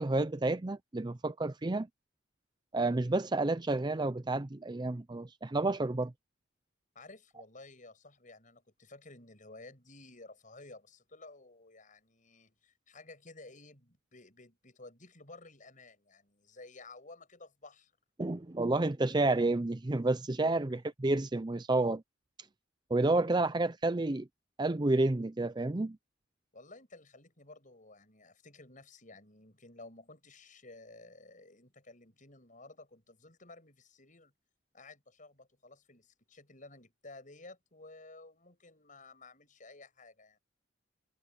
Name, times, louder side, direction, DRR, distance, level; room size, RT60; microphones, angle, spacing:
voice 1, 0.0-1.9 2.7-6.1 18.2-22.0 22.9-24.3 24.6-26.0, right 2 dB, 20° right, 0.5 m, -30 dB
voice 2, 6.9-17.9 20.7-20.8 26.5-34.3 34.7-40.4, left 2 dB, 40° left, 7.8 m, -54 dB
head